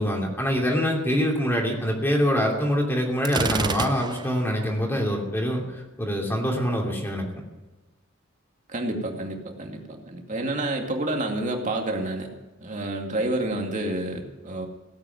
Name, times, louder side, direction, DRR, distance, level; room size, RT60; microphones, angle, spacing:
voice 1, 0.0-7.2, equal, 10° left, 0 dB, 2.9 m, -25 dB
Gunshot gunfire, 3.2-4.5, right 4 dB, 20° right, 0.5 m, -28 dB
voice 2, 8.7-12.3 12.6-14.7, right 1 dB, 40° right, 2 dB, 2.4 m, -29 dB
17.0 x 8.8 x 9.4 m, 1.1 s
head